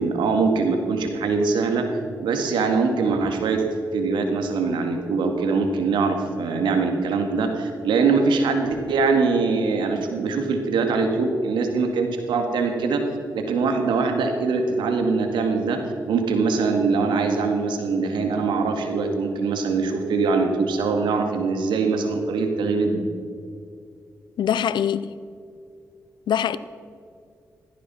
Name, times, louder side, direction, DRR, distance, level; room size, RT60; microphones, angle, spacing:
voice 1, 0.0-1.9 2.2-3.7 3.9-13.0 13.3-15.8 16.1-23.0, right 4 dB, 85° right, 2.0 m, -22 dB
voice 2, 24.4-25.1 26.3-26.6, left 9 dB, 75° left, 0.6 m, -23 dB
17.0 x 14.5 x 4.3 m
supercardioid pair, 40°, 8 cm